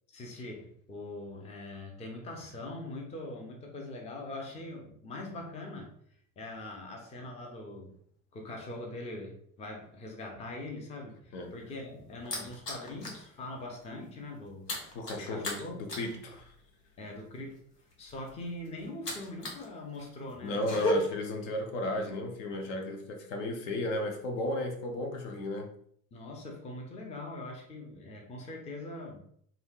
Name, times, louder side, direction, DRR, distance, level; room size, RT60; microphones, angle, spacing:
voice 1, 0.1-5.9 6.4-8.0 8.3-14.7 15.2-15.9 17.0-17.6 18.0-21.0 26.1-29.2, left 2 dB, 15° left, 0.5 m, -42 dB
sound 1, 11.5-13.3 13.6-13.8 14.1-19.7 19.9-20.9, left 3 dB, 80° left, 0.9 m, -38 dB
voice 2, 14.9-16.5 20.4-25.7, left 1 dB, 55° left, 0.7 m, -34 dB
3.2 x 2.8 x 2.3 m
figure-of-eight pair, 70°, 47 cm